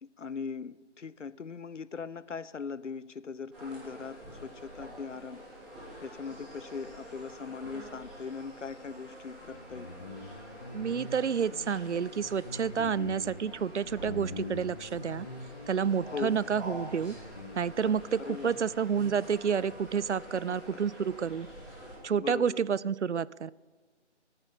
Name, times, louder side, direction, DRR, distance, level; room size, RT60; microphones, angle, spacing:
voice 1, 0.0-5.4 6.0-10.0 12.8-13.1 16.1-16.4 17.8-18.6 20.3-20.8 22.2-22.6, left 5 dB, 85° left, 19 dB, 0.6 m, -40 dB
sound 1, 3.5-21.9, equal, 5° right, 1.5 m, -47 dB
Guitar, 9.4-17.9, left 2 dB, 20° left, 1.1 m, -44 dB
voice 2, 10.7-15.3 15.7-17.2 17.6-21.5 22.0-23.5, right 7 dB, 75° right, 22 dB, 0.5 m, -29 dB
13.5 x 7.8 x 7.6 m, 1.3 s
figure-of-eight pair, 155°, 35 cm